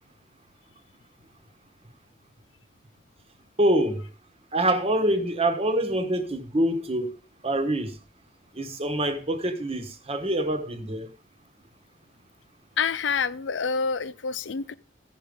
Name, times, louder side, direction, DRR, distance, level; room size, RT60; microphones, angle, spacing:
voice 1, 3.6-4.0 4.5-7.1 7.4-7.9 8.5-11.1, right 1 dB, 30° right, 1.2 m, -25 dB
voice 2, 12.8-14.7, left 5 dB, 75° left, 0.5 m, -27 dB
15.5 x 5.3 x 5.1 m
head